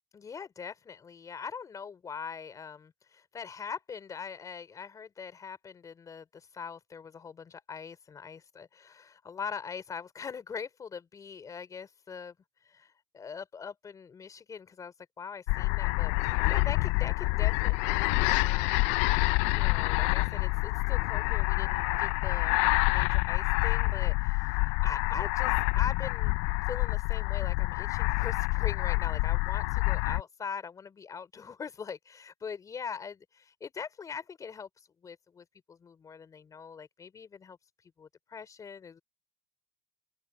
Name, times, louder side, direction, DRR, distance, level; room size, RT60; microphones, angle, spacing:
voice 1, 0.1-19.0 19.5-26.4 26.6-39.0, left 6 dB, 30° left, 4.0 m, -42 dB
sound 1, 15.5-30.2, left 24 dB, 85° left, 0.4 m, -27 dB
open air
cardioid pair, 125°, 12 cm